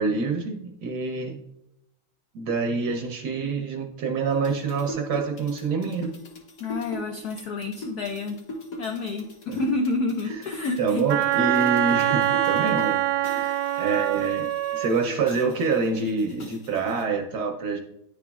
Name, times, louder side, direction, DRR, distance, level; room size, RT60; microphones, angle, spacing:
voice 1, 0.0-1.4 2.3-6.1 9.5-9.6 10.3-10.4 10.8-17.8, right 4 dB, 65° right, 2 dB, 1.1 m, -26 dB
sound 1, 4.3-12.9 13.2-17.0, left 1 dB, 45° left, 1.5 m, -40 dB
voice 2, 6.6-8.4 8.8-11.0 13.4-13.5, left 3 dB, 85° left, 4 dB, 0.8 m, -29 dB
Wind instrument woodwind instrument, 11.1-15.0, right 12 dB, 80° right, 1.4 m, -24 dB
10.0 x 4.9 x 2.3 m, 0.83 s
omnidirectional pair, 2.4 m